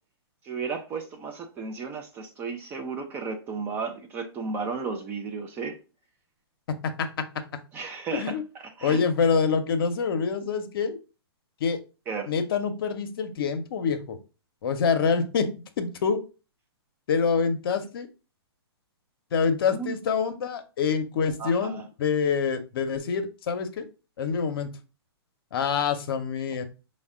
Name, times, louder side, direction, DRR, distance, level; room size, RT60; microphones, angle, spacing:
voice 1, 0.4-5.8 7.7-8.4 8.6-9.0 12.1-12.3 19.7-20.0 21.4-21.8, right 5 dB, 15° right, 0.3 m, -34 dB
voice 2, 8.8-11.0 11.6-11.8 12.3-14.2 14.6-15.5 15.8-16.2 17.1-18.1 19.3-23.9 24.2-24.7 25.5-26.6, left 6 dB, 55° left, 0.7 m, -26 dB
5.2 x 2.2 x 3.5 m
hypercardioid pair, 150°, 14 cm